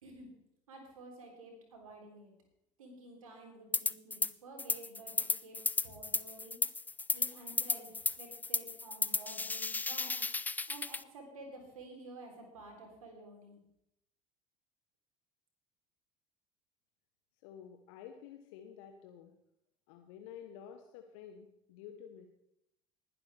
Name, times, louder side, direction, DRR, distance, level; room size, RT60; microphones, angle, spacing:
voice 1, 0.7-2.3 2.8-5.6 5.8-6.6 7.1-10.2 10.7-13.6, right 2 dB, 75° right, 2 dB, 3.5 m, -52 dB
sound 1, 3.7-4.3 4.6-11.0, left 3 dB, 10° left, 0.4 m, -34 dB
voice 2, 17.4-19.3 19.9-22.3, left 8 dB, 60° left, 6 dB, 1.1 m, -51 dB
20.0 x 11.0 x 3.4 m, 0.80 s
figure-of-eight pair, 65°, 18 cm